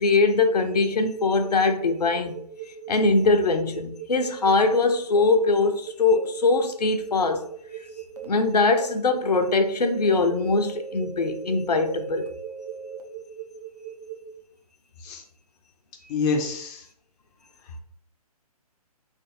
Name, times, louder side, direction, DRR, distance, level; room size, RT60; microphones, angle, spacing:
voice 1, 0.0-2.4 2.9-7.4 7.8-7.9 8.2-12.3, left 3 dB, 85° left, 0.6 m, -22 dB
sound 1, 0.7-14.2, right 10 dB, 40° right, 1.0 m, -39 dB
sound 2, 4.2-4.3 5.2-5.3 6.2-6.3 7.2-7.3 8.2-8.3 8.8-8.9 9.3-9.4 9.8-13.0, right 5 dB, 70° right, 0.7 m, -40 dB
voice 2, 16.1-16.8, left 4 dB, 15° left, 0.4 m, -26 dB
3.7 x 3.3 x 2.7 m
figure-of-eight pair, 140°, 20 cm